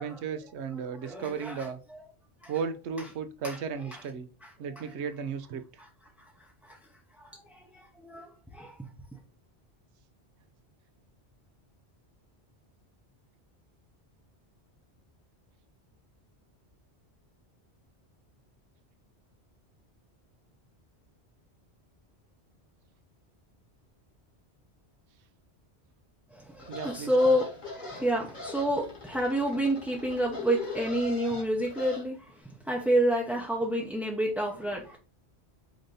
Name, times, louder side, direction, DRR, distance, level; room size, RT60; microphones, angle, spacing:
voice 1, 0.0-1.8 2.5-4.3 4.6-5.6 26.7-27.3, right 6 dB, 85° right, 0.9 m, -35 dB
voice 2, 1.0-2.0 2.4-2.5 3.4-3.6 3.9-4.0 4.4-4.5 6.2-6.3 6.6-6.8 7.2-7.7 8.0-8.7 26.3-35.0, equal, ahead, 0.5 m, -29 dB
sound 1, 26.6-32.0, left 3 dB, 45° left, 1.4 m, -41 dB
5.0 x 2.6 x 3.7 m
omnidirectional pair, 1.1 m